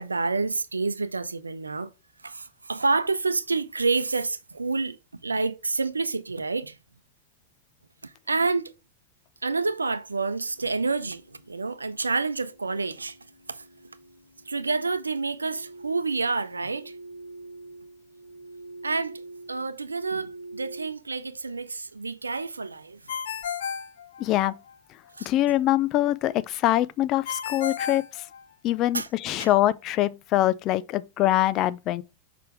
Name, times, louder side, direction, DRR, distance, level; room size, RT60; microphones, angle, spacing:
voice 1, 0.0-1.9 2.2-5.0 5.2-6.8 8.0-8.7 9.4-13.2 13.5-13.6 14.5-16.9 18.8-19.2 19.5-23.2 25.1-25.3 28.9-29.1 29.4-29.5, right 3 dB, 80° right, 0.6 m, -28 dB
sound 1, 10.1-20.9, right 2 dB, 85° left, 0.6 m, -46 dB
Ringtone, 23.1-24.7 27.3-28.9, left 7 dB, 60° left, 1.0 m, -33 dB
voice 2, 24.2-24.6 25.2-28.0 28.6-32.0, left 14 dB, 35° left, 0.5 m, -24 dB
6.7 x 5.0 x 3.3 m
figure-of-eight pair, 90°, 0 cm